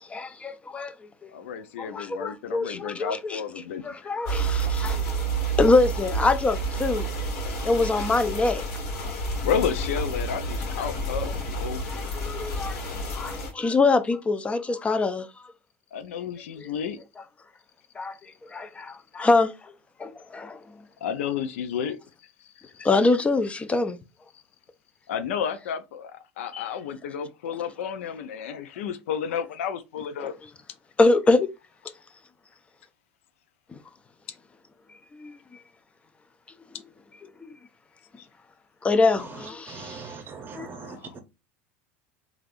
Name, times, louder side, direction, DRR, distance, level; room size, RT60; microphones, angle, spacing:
voice 1, 0.1-0.9 1.2-1.3 1.8-3.4 3.8-5.3 5.6-7.1 7.6-8.6 11.9-12.8 13.1-15.5 16.6-16.7 18.0-18.2 18.4-19.7 20.0-20.8 22.8-24.0 26.5-26.7 31.0-31.5 33.7-33.8 35.1-35.3 38.8-40.1 40.5-40.7, left 3 dB, 15° left, 0.4 m, -24 dB
voice 2, 1.3-3.8 9.4-12.1 15.9-17.0 21.0-22.7 25.1-30.4 38.2-38.3 40.6-41.1, left 7 dB, 80° left, 0.5 m, -32 dB
sound 1, 4.3-13.5, right 2 dB, 60° left, 1.4 m, -29 dB
voice 3, 39.2-41.2, right 4 dB, 30° right, 0.7 m, -41 dB
3.3 x 2.4 x 2.5 m
supercardioid pair, 105°, 7 cm